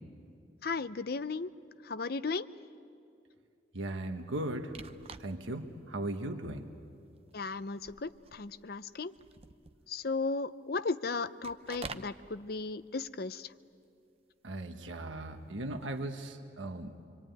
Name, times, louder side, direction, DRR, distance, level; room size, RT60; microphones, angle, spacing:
voice 1, 0.6-1.5 1.8-2.5 7.3-9.1 9.9-13.5, left 4 dB, 55° left, 14 dB, 0.6 m, -35 dB
voice 2, 3.7-4.7 5.2-6.7 14.4-16.9, right 1 dB, 90° right, 5 dB, 1.4 m, -37 dB
sound 1, 4.7-5.6 6.1-6.2 7.1-7.4 7.7-10.0 11.4-12.2 15.8-16.2, right 4 dB, 30° right, 0.7 m, -48 dB
25.5 x 25.0 x 9.3 m, 2.5 s
head